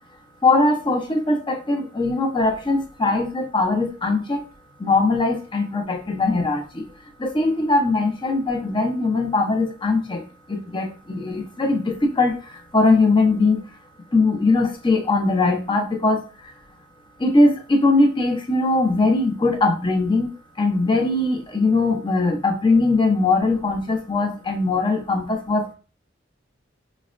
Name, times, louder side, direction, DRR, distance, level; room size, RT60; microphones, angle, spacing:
voice 1, 0.4-4.4 4.8-6.8 7.2-10.2 10.5-13.6 14.1-16.5 17.2-25.7, left 3 dB, 25° left, 3 dB, 0.6 m, -20 dB
4.0 x 2.1 x 2.4 m, 0.36 s
head